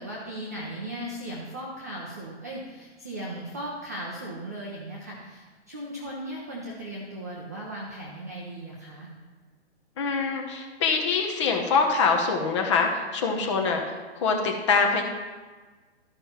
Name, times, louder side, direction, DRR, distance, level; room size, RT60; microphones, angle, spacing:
voice 1, 0.0-9.1, right 1 dB, 15° right, -4 dB, 0.4 m, -37 dB
voice 2, 10.0-13.8 14.2-15.0, left 4 dB, 25° left, 2 dB, 0.9 m, -24 dB
12.5 x 5.4 x 4.3 m, 1.3 s
hypercardioid pair, 165°, 34 cm